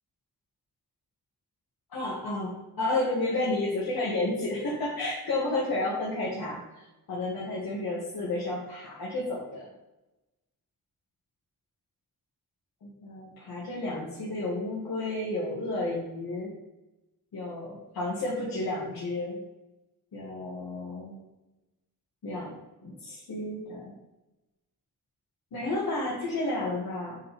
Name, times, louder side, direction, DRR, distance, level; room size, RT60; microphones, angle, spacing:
voice 1, 1.9-9.7 12.8-16.5 17.3-19.4 20.1-21.2 22.2-22.6 22.8-23.9 25.5-27.2, left 2 dB, 70° left, -7 dB, 2.0 m, -31 dB
7.9 x 5.7 x 3.6 m, 1.0 s
wide cardioid pair, 165°, 38 cm